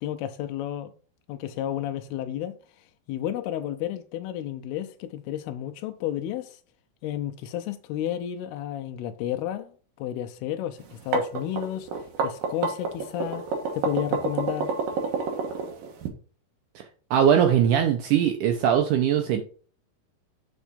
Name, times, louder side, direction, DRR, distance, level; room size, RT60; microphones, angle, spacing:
voice 1, 0.0-0.9 1.3-6.6 7.0-9.7 10.0-11.9 12.2-13.4 13.7-14.8, left 11 dB, 85° left, 2.6 m, -32 dB
sound 1, 10.9-16.1, right 4 dB, 70° right, 2.7 m, -28 dB
voice 2, 17.1-19.4, right 9 dB, 85° right, 1.8 m, -21 dB
7.2 x 4.7 x 5.1 m
omnidirectional pair, 4.5 m